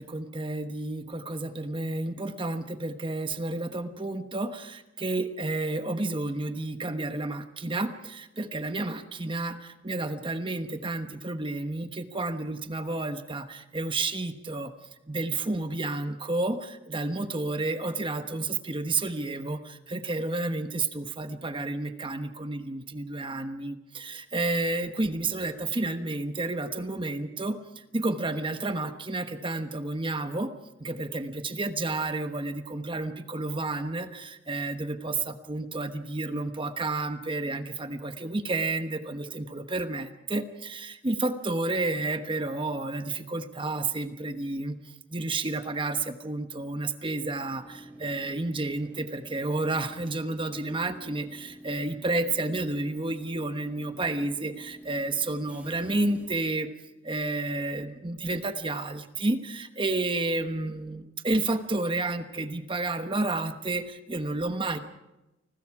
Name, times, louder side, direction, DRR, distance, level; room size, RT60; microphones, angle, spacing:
voice 1, 0.0-14.7 15.1-30.5 30.8-44.8 45.1-56.7 57.0-64.8, right 2 dB, 25° right, 8 dB, 1.2 m, -31 dB
Train / Subway metro underground, 47.5-56.3, right 1 dB, 5° right, 4.7 m, -48 dB
29.5 x 21.0 x 4.8 m, 0.97 s
head